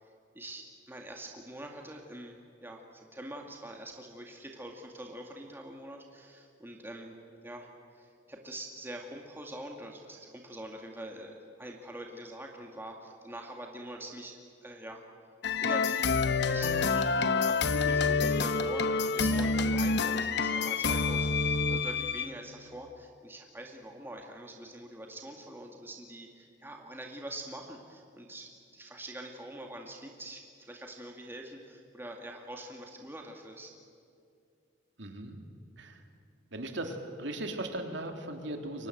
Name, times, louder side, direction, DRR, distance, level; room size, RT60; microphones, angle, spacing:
voice 1, 0.0-7.2 7.4-15.0 15.6-33.7, right 1 dB, 10° right, 1 dB, 2.1 m, -44 dB
sound 1, 15.4-22.3, left 4 dB, 60° left, 1.1 m, -27 dB
voice 2, 35.0-35.4 35.8-36.0 36.5-38.9, right 1 dB, 65° right, 4 dB, 3.0 m, -38 dB
29.5 x 24.0 x 7.9 m, 2.4 s
head